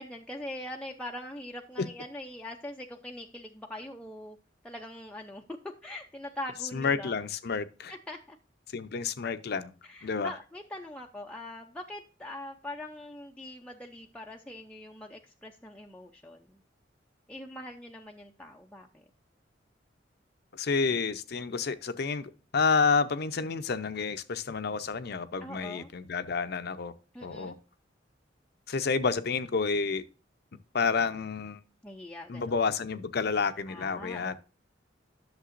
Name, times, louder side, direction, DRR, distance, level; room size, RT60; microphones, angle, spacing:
voice 1, 0.0-4.4 4.6-5.4 5.8-7.2 7.9-8.4 9.8-16.6 17.3-19.0 21.5-21.6 25.4-25.9 27.1-27.6 31.8-32.6 33.7-34.4, left 1 dB, 5° left, 0.5 m, -42 dB
voice 2, 6.7-7.9 8.7-9.7 10.0-10.3 20.5-26.9 27.2-27.6 28.7-30.0 30.7-31.6 32.3-34.4, left 5 dB, 60° left, 0.6 m, -29 dB
11.0 x 6.6 x 2.5 m
head